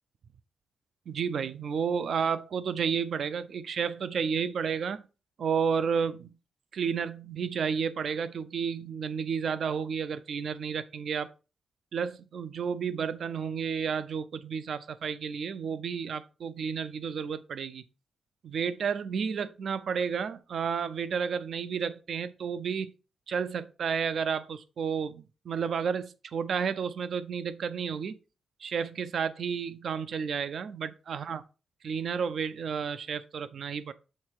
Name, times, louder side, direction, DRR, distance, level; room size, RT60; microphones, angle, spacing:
voice 1, 1.1-5.0 5.4-6.3 6.7-11.3 11.9-17.8 18.4-22.9 23.3-28.2 28.6-31.4 31.8-33.9, right 6 dB, 60° right, 0.5 m, -31 dB
6.6 x 3.2 x 4.6 m
wide cardioid pair, 145°, 0 cm